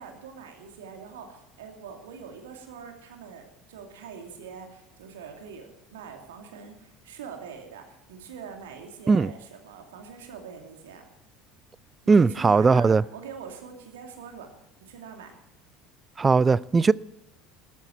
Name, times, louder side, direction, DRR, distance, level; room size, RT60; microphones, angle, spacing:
voice 1, 0.0-11.1 12.0-14.5 14.8-15.3, right 6 dB, 70° right, 2.5 m, -43 dB
voice 2, 12.1-13.0 16.2-16.9, right 4 dB, 20° right, 0.4 m, -19 dB
14.5 x 14.0 x 4.5 m
figure-of-eight pair, 65°, 0 cm